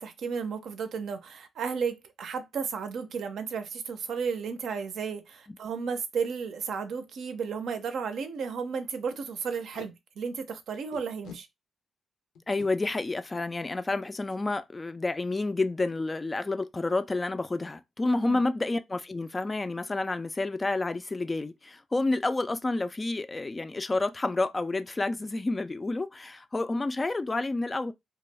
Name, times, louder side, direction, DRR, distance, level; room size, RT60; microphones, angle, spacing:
voice 1, 0.0-11.5 18.1-18.4, right 6 dB, 75° right, 0.5 m, -33 dB
Packing tape duct tape, 5.9-6.1 6.5-6.6 6.8-7.0 7.5-7.6 7.8-8.0 8.3-8.5 9.5-9.9 10.9-11.4 12.4-12.7 14.2-14.4 14.8-15.0 15.2-15.6, left 5 dB, 85° left, 0.6 m, -47 dB
voice 2, 12.5-27.9, left 2 dB, 25° left, 0.3 m, -29 dB
2.3 x 2.0 x 3.2 m
cardioid pair, 75°, 0 cm